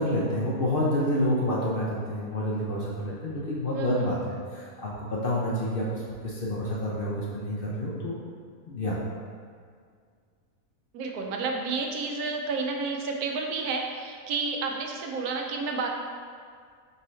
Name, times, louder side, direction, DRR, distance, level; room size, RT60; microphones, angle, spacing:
voice 1, 0.0-5.9 6.2-8.2 8.7-9.0, left 1 dB, 55° left, -6 dB, 0.6 m, -28 dB
voice 2, 3.7-4.2 10.9-15.9, right 4 dB, 80° right, 1 dB, 1.1 m, -31 dB
5.3 x 2.7 x 3.1 m, 2.1 s
omnidirectional pair, 1.6 m